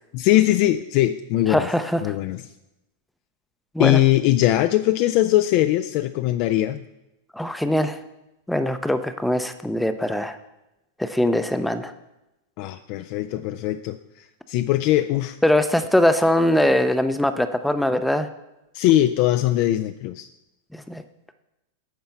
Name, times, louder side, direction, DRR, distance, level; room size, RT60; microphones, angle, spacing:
voice 1, 0.1-1.7 2.0-2.4 3.8-6.8 12.6-15.4 18.7-20.3, left 14 dB, 55° left, 8 dB, 0.3 m, -21 dB
voice 2, 1.5-2.1 3.7-4.0 7.3-8.0 8.5-10.4 11.0-11.9 15.4-18.3 20.7-21.0, left 1 dB, 5° left, 9 dB, 0.5 m, -21 dB
9.4 x 4.3 x 5.8 m, 0.95 s
hypercardioid pair, 100°, 0 cm